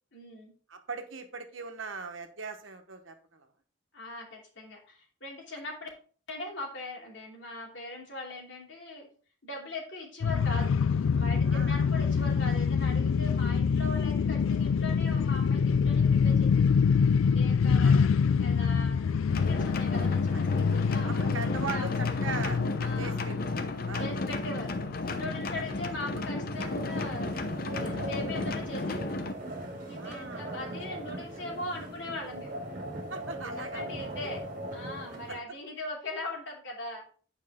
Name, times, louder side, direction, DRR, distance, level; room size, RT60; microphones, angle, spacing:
voice 1, 0.1-0.5 3.9-5.9 6.3-9.1 9.4-10.8 11.1-16.9 17.3-18.0 18.4-19.1 19.5-21.9 22.8-23.2 24.0-24.7 25.1-27.3 27.7-29.1 29.9-32.5 33.4-34.4 34.7-37.0, left 2 dB, 65° left, -1 dB, 2.8 m, -40 dB
voice 2, 0.7-3.5 11.5-11.8 17.8-18.0 18.6-18.7 20.3-20.4 21.1-22.6 23.0-23.6 23.9-24.1 30.0-30.7 33.1-34.1 35.3-35.4, right 4 dB, 75° right, 6 dB, 1.2 m, -40 dB
sound 1, 10.2-28.7, left 6 dB, 80° left, 0.4 m, -26 dB
sound 2, 19.3-29.3, left 2 dB, 45° left, 0.7 m, -33 dB
sound 3, 26.5-35.4, right 1 dB, 45° right, 1.8 m, -39 dB
8.9 x 4.9 x 3.6 m, 0.41 s
head